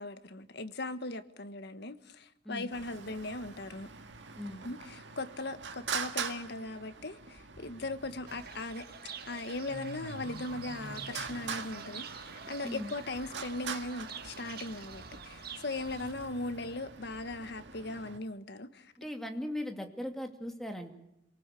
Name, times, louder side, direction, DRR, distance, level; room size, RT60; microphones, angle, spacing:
voice 1, 0.0-3.9 4.6-8.8 9.3-18.9, left 2 dB, 65° left, 1.6 m, -39 dB
Traffic noise roadway noise, 2.7-18.2, right 6 dB, 80° right, 1.9 m, -44 dB
Fowl / Bird, 8.3-16.1, right 5 dB, 60° right, 2.0 m, -47 dB
voice 2, 19.0-20.9, left 1 dB, ahead, 2.6 m, -38 dB
27.5 x 19.0 x 8.4 m
head